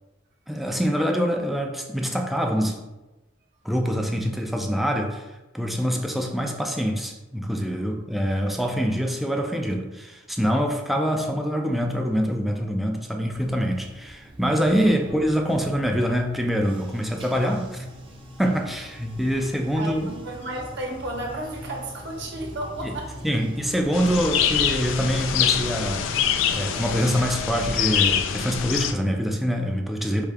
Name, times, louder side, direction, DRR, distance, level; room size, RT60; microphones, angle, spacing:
voice 1, 0.5-2.8 3.6-5.3 5.5-17.9 18.4-20.1 22.8-22.9 23.2-26.1 26.5-30.2, equal, ahead, 2 dB, 0.4 m, -25 dB
Bathtub (filling or washing), 13.3-27.3, equal, 25° right, 0.7 m, -42 dB
voice 2, 19.7-23.3, right 1 dB, 60° right, 0 dB, 0.9 m, -33 dB
sound 1, 23.9-28.9, left 8 dB, 75° left, 0.3 m, -24 dB
4.7 x 2.7 x 3.4 m, 1.1 s
head